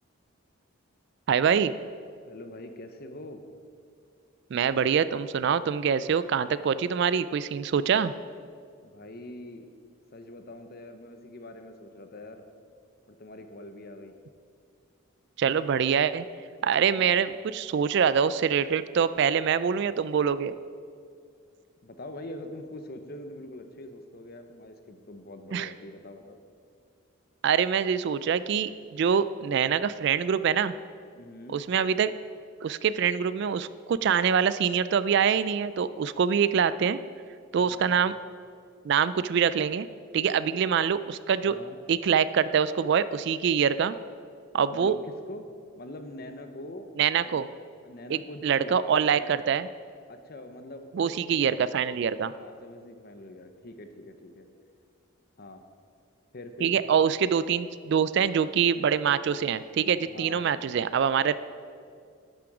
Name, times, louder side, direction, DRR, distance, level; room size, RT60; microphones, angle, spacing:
voice 1, 1.3-1.7 4.5-8.1 15.4-16.2 16.6-20.6 25.5-25.7 27.4-30.7 31.5-32.1 32.6-37.0 37.5-38.1 38.8-39.9 40.1-41.6 41.9-44.0 44.5-45.0 47.0-47.5 48.1-49.7 50.9-52.3 56.6-61.4, right 7 dB, 55° right, 15 dB, 0.3 m, -25 dB
voice 2, 2.3-3.4 8.8-9.7 10.1-12.4 13.1-14.1 16.8-17.1 21.8-26.4 31.2-31.6 37.6-38.0 41.4-41.8 44.7-45.5 45.8-46.9 47.3-47.4 47.8-49.4 50.1-51.6 52.3-54.5 55.4-55.6 56.3-56.7 60.0-60.6, left 1 dB, 45° left, 7 dB, 0.8 m, -43 dB
12.0 x 8.7 x 4.8 m, 2.2 s
head